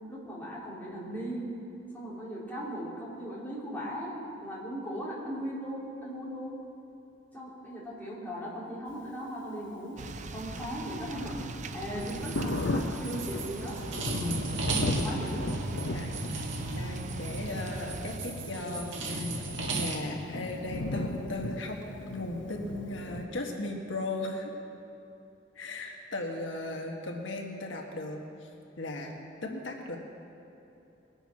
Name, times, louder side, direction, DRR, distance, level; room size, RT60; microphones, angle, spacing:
voice 1, 0.1-1.5 1.9-6.6 7.3-10.0 10.3-11.4 11.7-13.8 15.0-15.4, equal, 10° left, -8 dB, 3.6 m, -38 dB
sound 1, 10.0-18.2, right 3 dB, 40° right, 0.6 m, -40 dB
Thunder, 10.4-23.3, left 2 dB, 70° left, 0.8 m, -37 dB
sound 2, 12.0-20.0, right 2 dB, 90° right, 1.8 m, -35 dB
voice 2, 15.9-16.2 16.7-19.5 19.7-21.8 22.1-24.5 25.5-28.5 28.8-29.2 29.4-30.0, left 2 dB, 85° left, 1 dB, 1.4 m, -37 dB
21.0 x 7.1 x 5.9 m, 3.0 s
head